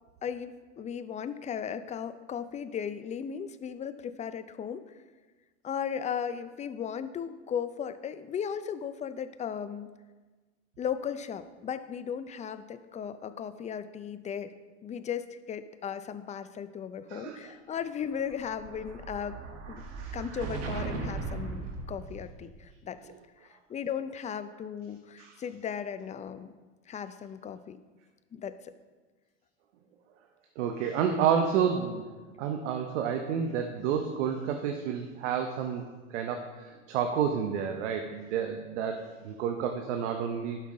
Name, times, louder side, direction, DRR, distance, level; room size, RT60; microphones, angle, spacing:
voice 1, 0.2-5.0 5.6-9.9 10.8-14.5 14.8-19.4 19.7-19.8 20.1-23.0 23.4-26.5 26.9-27.8 28.3-28.7, left 8 dB, 20° left, 12 dB, 0.5 m, -36 dB
voice 2, 17.1-17.5 19.8-20.2 25.2-25.4 30.6-32.1 32.4-35.8 36.1-40.6, right 7 dB, 70° right, 5 dB, 0.9 m, -30 dB
Explosion, 18.0-22.6, right 4 dB, 40° right, 1.5 m, -38 dB
11.5 x 5.8 x 3.8 m, 1.3 s
hypercardioid pair, 90°, 37 cm